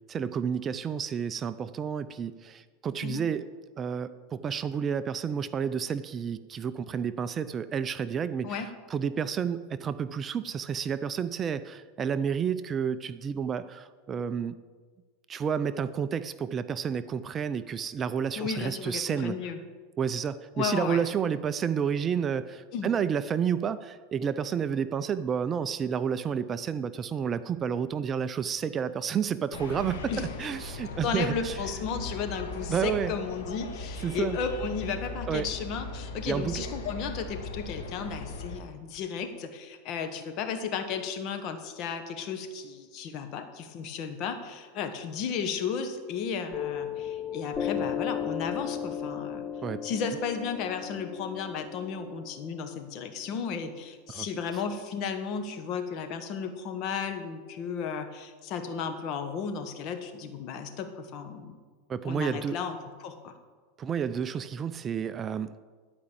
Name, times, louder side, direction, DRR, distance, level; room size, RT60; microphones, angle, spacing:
voice 1, 0.1-3.5 3.8-8.6 8.9-14.6 15.3-19.5 20.0-30.1 30.4-31.6 32.7-33.1 34.0-34.4 35.3-35.5 36.2-36.6 49.6-49.8 54.1-54.3 54.5-54.6 61.9-62.6 63.8-65.6, right 7 dB, 25° right, 13 dB, 0.4 m, -30 dB
voice 2, 18.4-19.6 20.6-21.0 22.7-22.9 30.1-30.3 31.0-49.5 49.8-61.5 62.0-62.8 63.0-63.3, left 6 dB, 45° left, 7 dB, 1.4 m, -34 dB
sound 1, 29.5-38.6, left 3 dB, 85° left, 1.8 m, -38 dB
Piano, 46.5-53.6, left 8 dB, 25° left, 0.7 m, -35 dB
11.5 x 5.2 x 8.5 m, 1.5 s
supercardioid pair, 130°, 0 cm